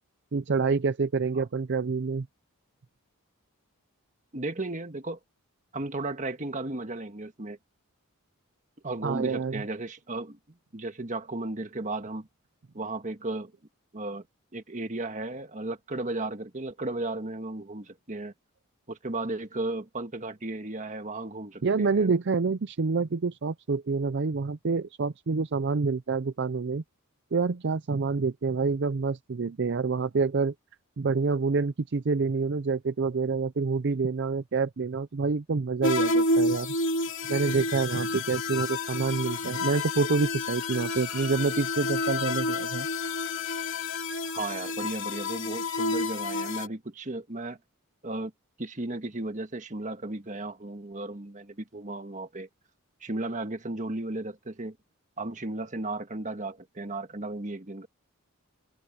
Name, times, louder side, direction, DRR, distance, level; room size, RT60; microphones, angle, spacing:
voice 1, 0.3-2.3 9.0-9.6 21.6-26.8 27.3-30.5 31.0-36.7 37.3-42.9, right 4 dB, 55° right, 0.5 m, -27 dB
voice 2, 4.3-5.2 5.7-7.6 8.8-10.4 10.7-12.3 12.7-13.5 13.9-14.2 14.5-18.3 18.9-22.1 44.3-47.6 48.0-48.3 48.6-52.5 53.0-54.8 55.2-57.9, right 2 dB, 35° right, 1.6 m, -35 dB
sound 1, 35.8-46.7, left 2 dB, 60° left, 3.4 m, -30 dB
Bowed string instrument, 37.2-44.1, left 14 dB, 85° left, 2.0 m, -37 dB
head